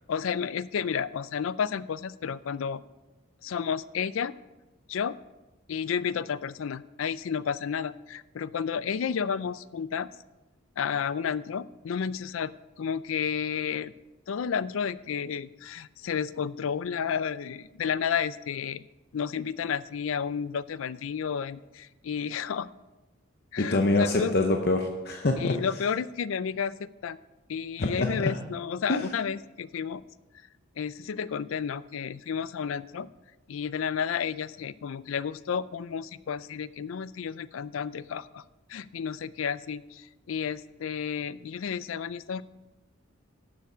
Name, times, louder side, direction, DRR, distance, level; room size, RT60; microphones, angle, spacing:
voice 1, 0.1-2.8 3.4-4.3 4.9-5.2 5.7-10.1 10.8-13.9 14.3-18.9 19.1-22.7 23.5-24.3 25.4-27.2 27.5-30.0 30.8-33.1 33.5-38.4 38.7-42.4, left 7 dB, 75° left, 17 dB, 0.4 m, -31 dB
voice 2, 23.6-25.6 27.8-28.3 28.9-29.1, left 2 dB, 50° left, 3 dB, 0.7 m, -25 dB
12.5 x 6.9 x 5.0 m, 1.1 s
head